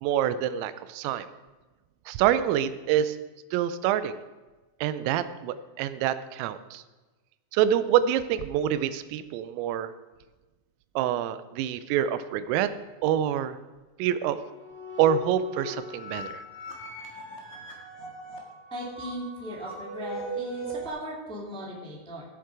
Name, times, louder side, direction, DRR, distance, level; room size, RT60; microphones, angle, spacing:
voice 1, 0.0-1.3 2.1-3.2 3.5-4.2 4.8-6.8 7.5-9.9 11.0-12.7 13.0-13.6 14.0-14.4 15.0-16.4, right 10 dB, 90° right, 13 dB, 3.3 m, -26 dB
sound 1, 14.4-20.9, right 1 dB, 55° left, 2.3 m, -39 dB
voice 2, 18.7-22.2, equal, 5° left, -4 dB, 0.9 m, -37 dB
16.0 x 7.5 x 4.8 m, 1.2 s
omnidirectional pair, 5.8 m